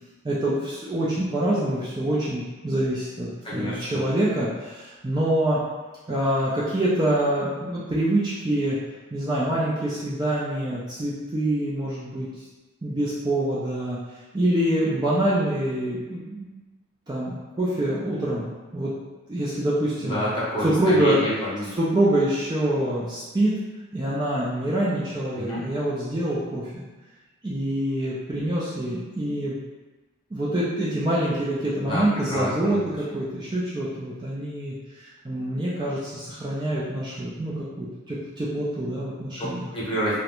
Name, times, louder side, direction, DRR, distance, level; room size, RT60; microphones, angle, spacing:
voice 1, 0.2-5.6 6.1-8.8 9.1-12.3 12.8-14.0 14.3-16.5 17.1-18.9 19.3-20.2 20.6-21.2 21.7-23.6 23.9-26.8 27.4-29.6 30.3-39.7, right 1 dB, 20° right, -8 dB, 0.3 m, -25 dB
voice 2, 3.4-4.0 20.0-21.7 25.4-25.6 31.8-32.9 39.4-40.2, equal, 25° left, -8 dB, 0.6 m, -28 dB
2.4 x 2.1 x 2.9 m, 1.2 s
head